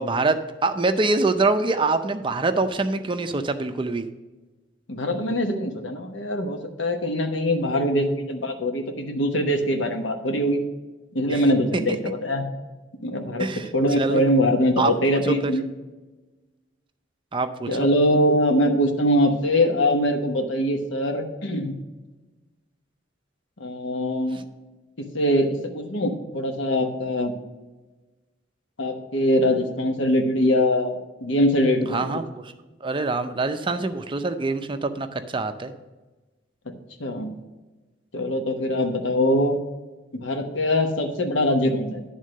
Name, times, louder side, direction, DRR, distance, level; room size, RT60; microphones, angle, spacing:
voice 1, 0.0-4.1 11.3-11.4 13.4-13.7 14.0-14.2 14.8-15.5 17.3-17.7 31.9-32.5 32.8-35.7, right 3 dB, 25° right, 9 dB, 0.5 m, -25 dB
voice 2, 4.9-10.6 11.1-12.4 13.0-13.5 13.7-15.6 17.7-21.7 23.6-24.4 25.0-27.3 28.8-32.1 37.0-37.3 38.1-39.6 40.1-42.0, equal, 80° left, 5 dB, 1.0 m, -23 dB
10.5 x 3.7 x 6.3 m, 1.2 s
head